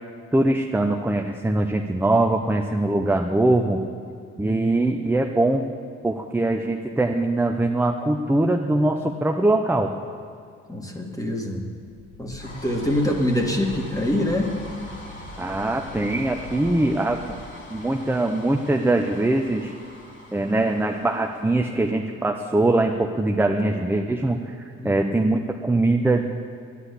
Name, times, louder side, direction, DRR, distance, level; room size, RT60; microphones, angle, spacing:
voice 1, 0.3-3.8 4.4-5.7 6.0-9.9 15.4-17.4 17.7-19.7 20.3-24.6 24.8-26.3, right 2 dB, 5° right, 3 dB, 0.7 m, -22 dB
voice 2, 10.7-11.6 12.2-14.5 24.8-25.0, left 1 dB, 10° left, 2 dB, 1.9 m, -25 dB
sound 1, 11.9-22.4, left 1 dB, 40° left, 3.1 m, -42 dB
10.5 x 10.0 x 8.3 m, 2.4 s
cardioid pair, 90°, 30 cm